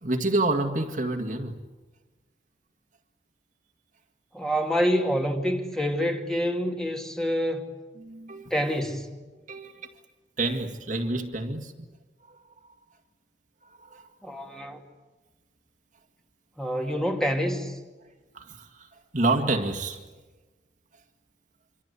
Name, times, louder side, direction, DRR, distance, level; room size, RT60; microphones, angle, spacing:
voice 1, 0.0-1.6 8.0-8.5 9.5-9.9 10.4-11.7 12.3-12.4 12.6-12.7 13.6-14.1 18.3-20.0, right 2 dB, 45° right, 2.0 m, -28 dB
voice 2, 4.3-7.7 8.5-9.1 14.2-14.8 16.6-17.8, equal, 5° left, 2.5 m, -27 dB
27.0 x 25.5 x 8.3 m
head